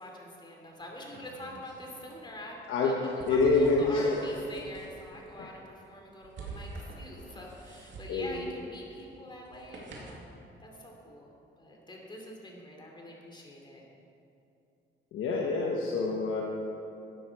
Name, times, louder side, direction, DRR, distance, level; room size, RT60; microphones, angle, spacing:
voice 1, 0.0-13.8, left 1 dB, 25° left, -1 dB, 2.9 m, -45 dB
sound 1, 0.7-10.3, right 3 dB, 70° right, 2.4 m, -48 dB
voice 2, 3.3-4.3 5.4-5.5 8.1-8.4 15.1-16.4, left 3 dB, 80° left, -1 dB, 1.2 m, -26 dB
13.5 x 9.6 x 4.8 m, 2.7 s
cardioid pair, 90°, 20 cm